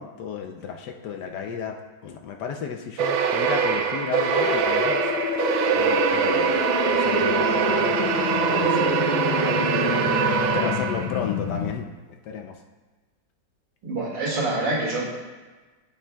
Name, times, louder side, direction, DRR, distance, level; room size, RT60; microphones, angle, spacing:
voice 1, 0.0-5.1 5.7-9.0 9.4-12.6, left 7 dB, 70° left, 4 dB, 1.1 m, -33 dB
sound 1, 3.0-11.3, right 7 dB, 85° right, 1.4 m, -23 dB
sound 2, 4.3-11.7, left 8 dB, 90° left, 1.3 m, -28 dB
voice 2, 13.8-15.1, right 2 dB, 70° right, -4 dB, 2.7 m, -26 dB
16.0 x 5.9 x 2.3 m, 1.3 s
omnidirectional pair, 2.1 m